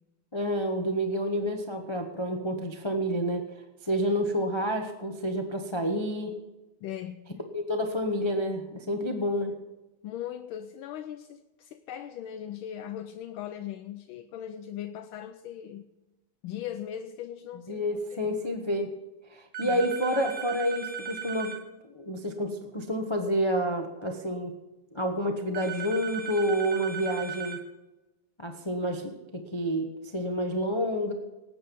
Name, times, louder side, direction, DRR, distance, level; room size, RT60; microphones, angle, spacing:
voice 1, 0.3-3.4 3.8-6.3 7.5-9.5 17.7-18.9 19.3-21.5 21.8-24.5 24.9-27.6 28.4-31.1, equal, 25° left, 4 dB, 0.6 m, -29 dB
voice 2, 6.8-7.3 10.0-15.9 16.4-18.3 19.6-19.8, left 10 dB, 75° left, 9 dB, 1.4 m, -39 dB
sound 1, 19.5-21.6 25.5-27.6, right 8 dB, 45° right, 1.2 m, -37 dB
18.5 x 8.8 x 5.4 m, 1.0 s
omnidirectional pair, 2.4 m